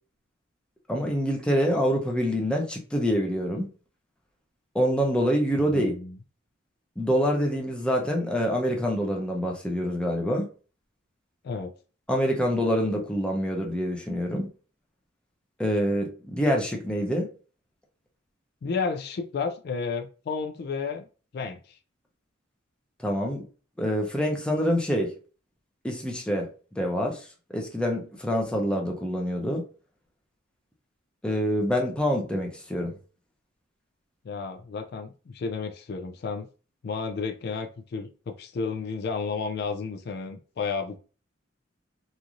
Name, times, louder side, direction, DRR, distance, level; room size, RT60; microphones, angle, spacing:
voice 1, 0.9-3.7 4.7-5.9 7.0-10.5 12.1-14.5 15.6-17.3 23.0-23.4 23.8-25.1 25.8-26.5 26.8-27.2 27.5-29.6 31.2-32.9, equal, 5° left, 0.6 m, -26 dB
voice 2, 5.6-6.2 11.4-11.7 18.6-21.1 21.3-21.8 34.2-36.5 36.8-41.0, left 5 dB, 55° left, 0.3 m, -32 dB
3.0 x 2.6 x 2.4 m
head